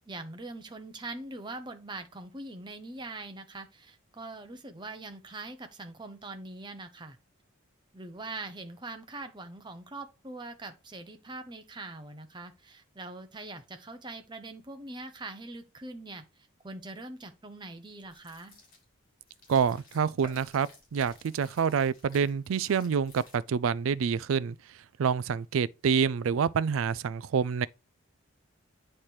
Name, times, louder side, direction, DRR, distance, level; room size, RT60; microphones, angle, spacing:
voice 1, 0.1-7.2 7.9-16.2 16.6-18.6, right 2 dB, 20° right, 0.8 m, -42 dB
sound 1, 18.0-23.7, left 2 dB, 40° left, 2.9 m, -55 dB
voice 2, 19.5-24.6 25.0-27.7, right 6 dB, 70° right, 0.3 m, -27 dB
8.6 x 3.3 x 4.4 m
head